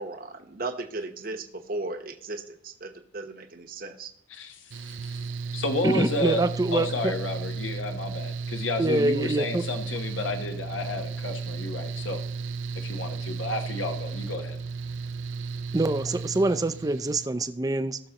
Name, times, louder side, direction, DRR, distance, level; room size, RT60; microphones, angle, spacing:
voice 1, 0.0-4.1, right 2 dB, 50° right, 5 dB, 1.0 m, -36 dB
voice 2, 4.3-5.2 5.5-6.4 6.7-12.2 12.8-14.6, left 2 dB, 90° left, 5 dB, 1.0 m, -31 dB
Mechanical fan, 4.7-17.3, right 4 dB, 80° right, 0.4 m, -34 dB
voice 3, 5.8-7.1 8.8-9.6 15.7-18.0, right 2 dB, 20° right, 11 dB, 0.4 m, -25 dB
18.5 x 6.5 x 2.9 m, 0.76 s
head